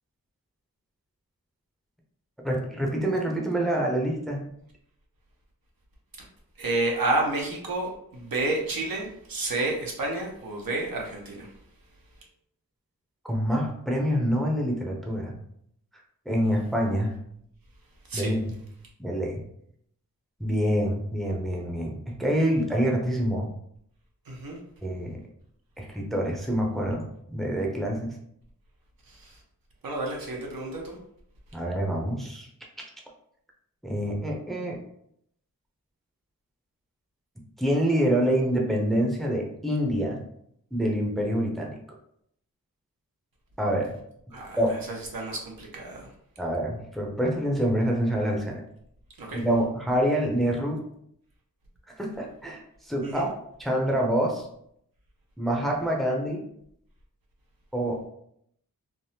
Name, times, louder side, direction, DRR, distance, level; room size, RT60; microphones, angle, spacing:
voice 1, 2.4-4.4 13.3-15.3 16.3-17.1 18.1-18.4 19.0-19.4 20.4-23.5 24.8-25.2 25.8-28.1 31.5-32.5 32.8-32.9 33.8-34.8 37.6-40.2 40.7-41.8 43.6-44.0 44.6-44.8 46.4-48.6 49.3-50.8 51.9-53.3 53.6-54.5 55.4-56.4 57.7-58.1, equal, ahead, -1 dB, 0.6 m, -26 dB
voice 2, 6.6-11.5 18.1-18.4 24.3-24.6 29.1-29.4 29.8-31.0 44.3-46.1 49.2-49.4 53.0-53.3, right 2 dB, 75° right, -1 dB, 0.9 m, -30 dB
3.4 x 2.0 x 2.7 m, 0.70 s
wide cardioid pair, 70°, 35 cm